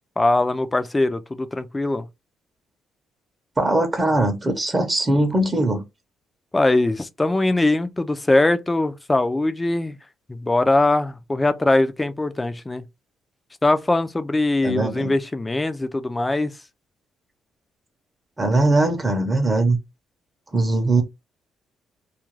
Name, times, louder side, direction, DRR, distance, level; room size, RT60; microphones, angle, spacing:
voice 1, 0.2-2.1 6.5-10.0 10.3-12.9 13.6-16.6, left 2 dB, 15° left, 0.4 m, -21 dB
voice 2, 3.6-5.8 14.6-15.1 18.4-19.8 20.5-21.0, right 2 dB, 25° right, 0.7 m, -20 dB
2.4 x 2.2 x 3.1 m
cardioid pair, 90°, 0 cm